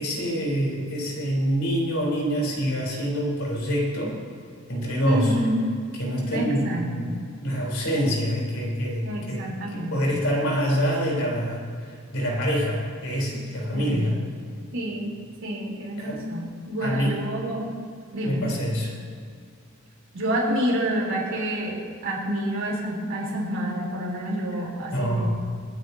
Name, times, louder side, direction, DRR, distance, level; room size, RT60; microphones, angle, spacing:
voice 1, 0.0-4.2 4.7-5.4 6.0-7.1 7.4-11.6 12.1-14.2 16.0-16.2 16.8-17.2 18.2-18.9 24.9-25.3, equal, 75° left, -3 dB, 3.8 m, -26 dB
voice 2, 5.0-5.6 6.3-7.2 9.0-10.0 13.7-14.0 14.7-15.1 15.4-17.6 18.1-18.5 20.1-25.3, right 1 dB, 65° right, -3 dB, 3.6 m, -28 dB
27.0 x 9.4 x 2.8 m, 2.2 s
head